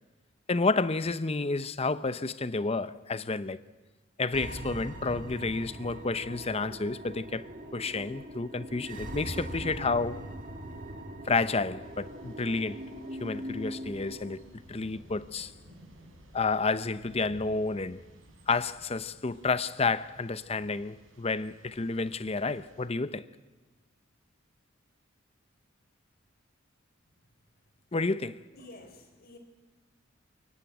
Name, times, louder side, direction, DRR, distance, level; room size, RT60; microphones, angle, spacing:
voice 1, 0.5-3.6 4.2-7.5 7.7-10.3 11.3-12.8 13.2-15.5 16.3-18.0 18.5-23.3 27.9-28.4, left 3 dB, 30° left, 0.7 m, -30 dB
sound 1, 4.3-14.4, equal, 40° right, 2.5 m, -41 dB
Thunder / Rain, 11.8-22.9, equal, 75° right, 6.2 m, -56 dB
voice 2, 28.5-29.4, left 2 dB, 50° left, 3.8 m, -50 dB
23.5 x 22.5 x 9.2 m
head